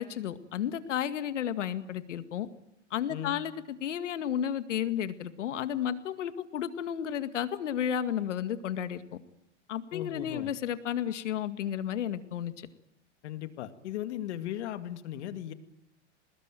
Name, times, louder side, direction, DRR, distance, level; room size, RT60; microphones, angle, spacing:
voice 1, 0.0-2.5 2.9-3.5 3.8-9.0 9.7-12.7, left 9 dB, 85° left, 11 dB, 2.1 m, -32 dB
voice 2, 9.9-10.5 13.2-15.5, left 11 dB, 70° left, 10 dB, 2.3 m, -37 dB
22.5 x 20.5 x 9.2 m, 0.83 s
hypercardioid pair, 130°, 35 cm